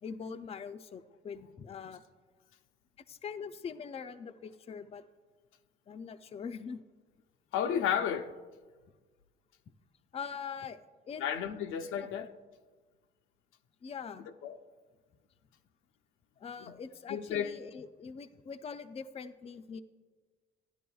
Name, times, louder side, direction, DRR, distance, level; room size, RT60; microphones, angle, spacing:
voice 1, 0.0-2.0 3.1-5.0 5.9-6.8 10.1-11.3 11.8-12.1 13.8-14.3 16.4-19.8, left 6 dB, 30° left, 0.4 m, -43 dB
voice 2, 7.5-8.3 11.2-12.3 14.4-14.6 17.1-17.5, left 8 dB, 90° left, 0.6 m, -32 dB
12.5 x 10.0 x 2.3 m
cardioid pair, 90°, 20 cm